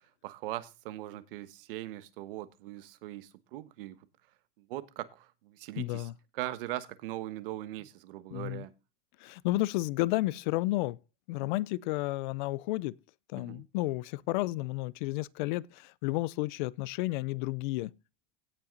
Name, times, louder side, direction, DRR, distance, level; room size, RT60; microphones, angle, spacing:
voice 1, 0.2-4.0 4.6-8.7 13.4-13.6, right 15 dB, 70° right, 1.3 m, -40 dB
voice 2, 5.8-6.1 8.3-8.6 9.2-11.0 11.3-13.0 13.3-17.9, left 19 dB, 55° left, 0.5 m, -32 dB
17.0 x 5.7 x 3.9 m
supercardioid pair, 170°, 29 cm